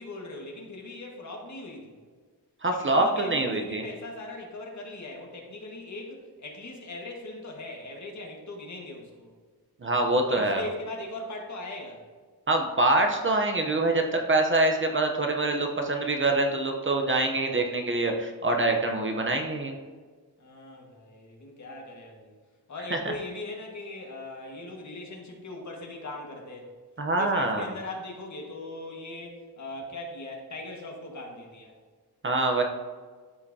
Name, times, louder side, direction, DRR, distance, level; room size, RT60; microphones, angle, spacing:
voice 1, 0.0-2.0 2.7-9.3 10.3-12.1 20.4-22.3 22.7-26.7 27.2-31.7, left 2 dB, 45° left, 0 dB, 1.6 m, -40 dB
voice 2, 2.6-3.8 9.8-10.7 12.5-19.7 22.9-23.1 27.0-27.7 32.2-32.6, right 2 dB, 30° right, 2 dB, 0.7 m, -25 dB
13.0 x 5.6 x 2.8 m, 1.5 s
wide cardioid pair, 160°, 39 cm